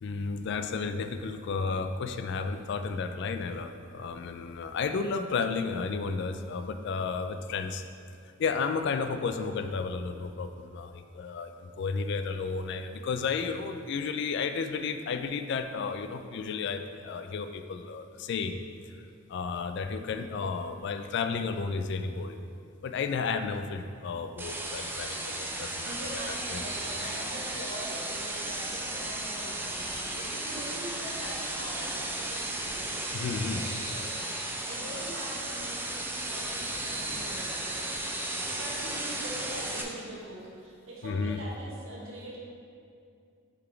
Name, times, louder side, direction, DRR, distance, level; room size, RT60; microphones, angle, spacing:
voice 1, 0.0-7.8 8.4-18.6 19.3-22.4 22.8-26.6 33.1-33.6 41.0-41.4, left 5 dB, 55° left, 9 dB, 0.3 m, -32 dB
sound 1, 24.4-39.8, right 1 dB, 10° right, 0.5 m, -35 dB
voice 2, 25.8-42.4, right 1 dB, 65° right, -4 dB, 1.4 m, -43 dB
6.5 x 4.1 x 4.5 m, 2.4 s
head